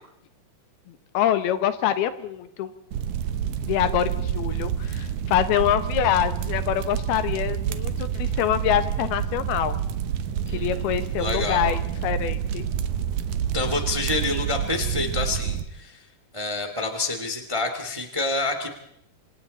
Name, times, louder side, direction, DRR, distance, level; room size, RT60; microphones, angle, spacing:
voice 1, 0.9-2.7 3.6-9.8 10.5-12.7, left 11 dB, 90° left, 11 dB, 3.2 m, -25 dB
sound 1, 2.9-15.6, right 9 dB, 65° right, 2.1 m, -28 dB
voice 2, 10.4-11.7 13.5-16.1 16.3-18.7, left 3 dB, 15° right, 6 dB, 1.4 m, -28 dB
28.0 x 26.5 x 4.2 m, 0.73 s
omnidirectional pair, 4.3 m